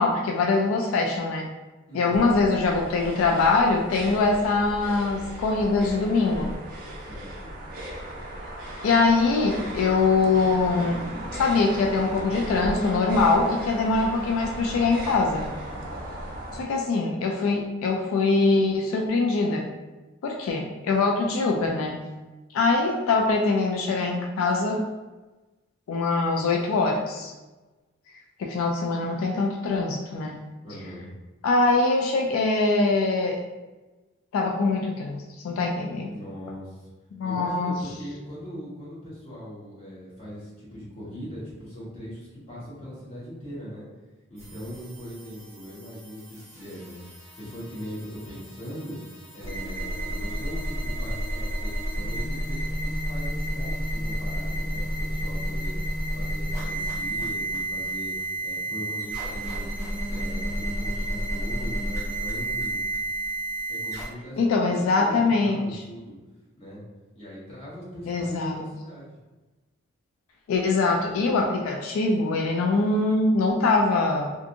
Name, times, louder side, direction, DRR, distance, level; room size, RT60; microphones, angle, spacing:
voice 1, 0.0-1.5 1.9-6.6 8.8-11.0 11.3-15.5 16.5-19.7 20.2-22.1 22.5-24.8 25.9-27.3 28.4-30.4 31.4-33.4 34.3-36.2 37.1-37.8 64.4-65.8 68.1-68.6 70.5-74.4, left 3 dB, 90° left, 1 dB, 0.3 m, -23 dB
voice 2, 1.9-2.3 6.9-7.5 30.6-31.1 36.1-36.9 37.2-43.8 44.3-47.0 47.3-55.8 56.1-58.1 58.4-59.7 60.0-62.8 63.7-66.2 66.6-66.8 67.1-69.1, equal, 30° left, -8 dB, 1.0 m, -40 dB
sound 1, 2.1-16.6, right 1 dB, 45° right, 0.4 m, -36 dB
sound 2, 44.4-64.1, right 1 dB, 15° right, 0.9 m, -31 dB
2.5 x 2.4 x 2.7 m, 1.2 s
head